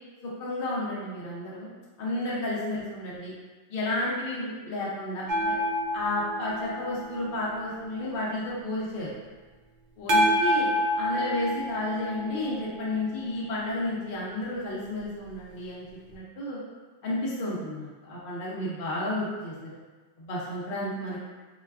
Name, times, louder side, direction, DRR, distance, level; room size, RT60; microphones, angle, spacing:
voice 1, 0.4-1.7 2.0-3.3 3.7-5.6 5.9-9.1 10.0-10.7 11.0-16.6 17.0-19.8 20.2-21.2, left 1 dB, 60° left, -6 dB, 0.7 m, -32 dB
sound 1, 5.3-8.1 10.1-13.3 16.1-16.2, equal, 60° right, 0.5 m, -28 dB
3.9 x 2.2 x 2.3 m, 1.3 s
omnidirectional pair, 1.2 m